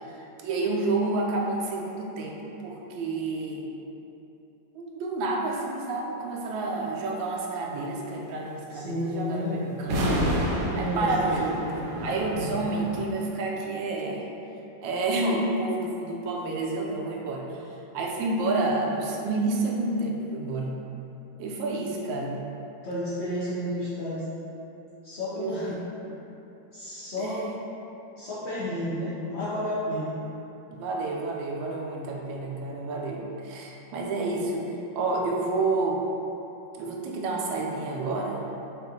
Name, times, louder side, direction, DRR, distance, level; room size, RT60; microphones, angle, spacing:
voice 1, 0.1-3.7 4.7-10.0 10.7-11.6 12.0-14.2 14.8-17.6 17.9-20.8 21.4-22.4 25.3-25.8 27.2-27.4 30.7-36.0 36.8-38.4, right 2 dB, 85° right, -1 dB, 1.3 m, -29 dB
voice 2, 8.7-9.7 10.6-11.7 22.8-24.3 25.0-25.8 26.7-27.5 28.2-30.2, left 1 dB, 70° left, -10 dB, 0.6 m, -31 dB
sound 1, 9.8-13.1, equal, 70° right, 1.1 m, -29 dB
5.9 x 2.5 x 2.7 m, 3.0 s
omnidirectional pair, 2.0 m